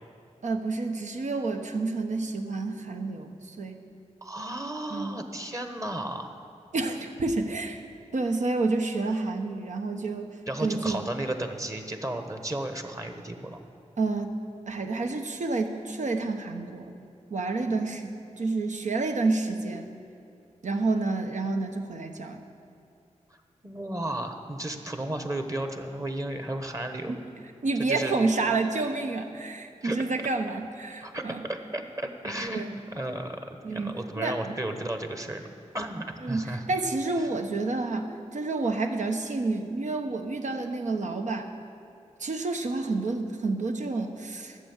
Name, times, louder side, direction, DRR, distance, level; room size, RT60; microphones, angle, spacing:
voice 1, 0.4-3.8 4.9-5.2 6.7-7.8 8.1-10.3 10.6-11.1 14.0-14.3 14.7-16.9 17.3-19.9 20.6-22.4 27.1-27.2 27.6-31.5 32.5-32.7 33.6-34.6 36.2-41.5 42.2-44.6, right 3 dB, 75° right, 4 dB, 1.0 m, -29 dB
voice 2, 4.2-6.3 10.5-13.6 23.3-23.4 23.6-27.1 27.8-28.1 29.8-30.0 31.0-31.2 31.5-35.5 35.7-36.7, right 1 dB, 25° right, 6 dB, 1.1 m, -34 dB
13.0 x 7.7 x 7.2 m, 2.5 s
wide cardioid pair, 65°, 12 cm